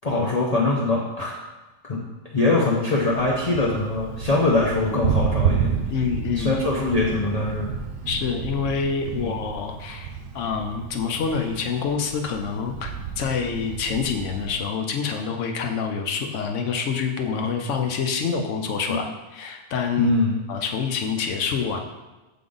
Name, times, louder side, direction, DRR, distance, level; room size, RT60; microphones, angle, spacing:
voice 1, 0.0-1.4 1.8-2.0 2.3-5.7 6.4-7.7 9.1-9.3 18.9-19.0 20.0-20.4, left 2 dB, 40° left, -4 dB, 0.6 m, -22 dB
Thunder, 3.0-14.6, right 6 dB, 80° right, 1.1 m, -30 dB
voice 2, 5.9-6.6 8.1-20.1 20.5-21.8, left 6 dB, 70° left, 4 dB, 0.9 m, -27 dB
6.8 x 3.7 x 3.8 m, 1.1 s
omnidirectional pair, 1.4 m